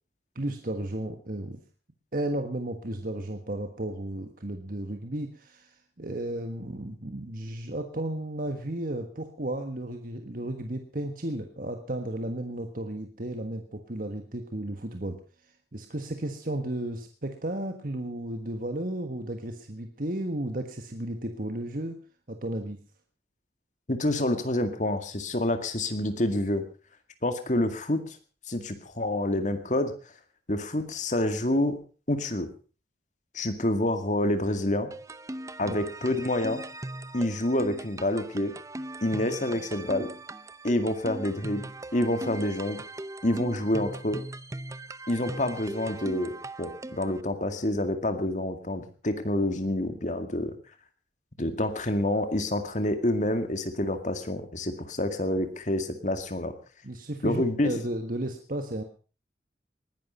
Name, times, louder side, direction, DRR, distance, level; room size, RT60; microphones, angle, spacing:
voice 1, 0.3-1.6 2.1-22.0 22.3-22.8 35.6-35.8 51.4-51.5 56.8-58.8, right 1 dB, 50° right, 5 dB, 1.5 m, -34 dB
voice 2, 23.9-26.6 27.2-28.2 28.5-29.9 30.5-31.8 32.1-32.5 33.3-34.9 35.6-36.6 37.1-38.5 39.0-40.1 40.6-42.8 43.2-44.2 45.1-50.6 51.4-56.5 57.2-57.8, left 1 dB, 45° left, 8 dB, 2.1 m, -28 dB
sound 1, 34.9-47.2, right 1 dB, 20° right, 0.7 m, -39 dB
20.0 x 11.5 x 5.5 m, 0.38 s
head